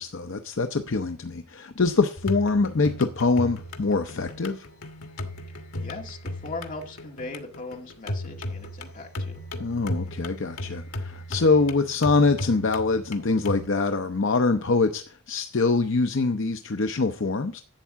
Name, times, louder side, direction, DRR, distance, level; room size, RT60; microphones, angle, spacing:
voice 1, 0.0-4.7 9.6-17.6, left 3 dB, 60° left, 0.6 m, -24 dB
sound 1, 2.2-13.7, left 1 dB, 85° left, 1.5 m, -36 dB
voice 2, 5.8-9.4, left 3 dB, 35° left, 1.9 m, -39 dB
11.5 x 8.3 x 3.6 m
head